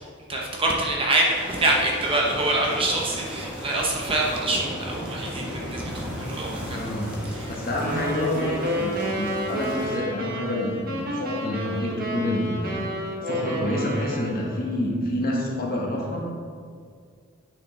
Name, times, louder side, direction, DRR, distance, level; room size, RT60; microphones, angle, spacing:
voice 1, 0.3-6.9 7.2-7.6, right 2 dB, 25° right, -2 dB, 0.9 m, -25 dB
sound 1, 1.3-9.9, equal, 5° right, 1.3 m, -35 dB
voice 2, 6.7-16.2, left 1 dB, 40° left, -2 dB, 1.3 m, -28 dB
sound 2, 7.8-14.6, equal, 40° right, 1.2 m, -30 dB
8.7 x 6.7 x 3.3 m, 2.1 s
head